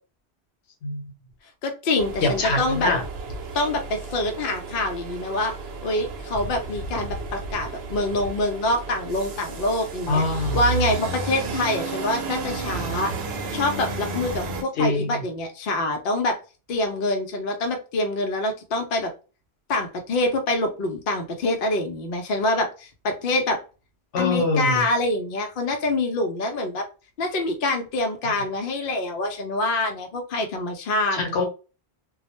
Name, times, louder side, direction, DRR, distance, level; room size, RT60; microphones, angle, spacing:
voice 1, 1.6-2.9 3.5-5.5 5.8-10.2 10.5-13.1 13.5-16.4 16.7-19.1 19.7-23.6 24.2-26.8 27.2-31.2, left 2 dB, 60° left, 4 dB, 0.7 m, -25 dB
sound 1, 2.0-14.6, right 4 dB, 70° right, 0.9 m, -32 dB
voice 2, 2.2-3.0 10.1-10.6 14.8-15.2 24.1-24.8 31.1-31.4, left 2 dB, 85° left, 4 dB, 1.0 m, -24 dB
2.2 x 2.0 x 2.9 m, 0.33 s
omnidirectional pair, 1.1 m